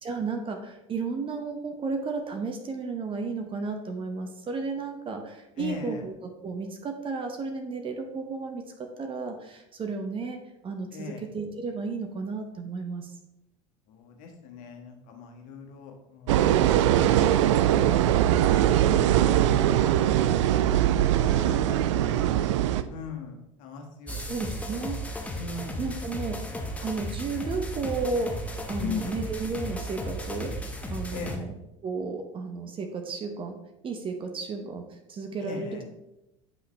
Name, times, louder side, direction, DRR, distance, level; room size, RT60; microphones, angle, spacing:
voice 1, 0.0-13.2 24.3-25.0 25.8-28.3 28.7-30.5 30.9-31.6 31.8-35.8, right 4 dB, 30° right, 5 dB, 0.9 m, -33 dB
voice 2, 5.6-6.0 10.9-11.2 13.9-17.5 18.4-18.6 19.0-19.5 21.1-22.2 22.9-24.4 24.7-24.8 25.4-26.0 28.8-29.2 31.1-31.5 35.4-35.8, left 5 dB, 55° left, 2 dB, 1.5 m, -40 dB
sound 1, 16.3-22.8, right 11 dB, 65° right, 0.4 m, -21 dB
sound 2, 24.1-31.4, equal, 10° left, 1.1 m, -35 dB
8.5 x 5.6 x 3.3 m, 0.91 s
figure-of-eight pair, 70°, 16 cm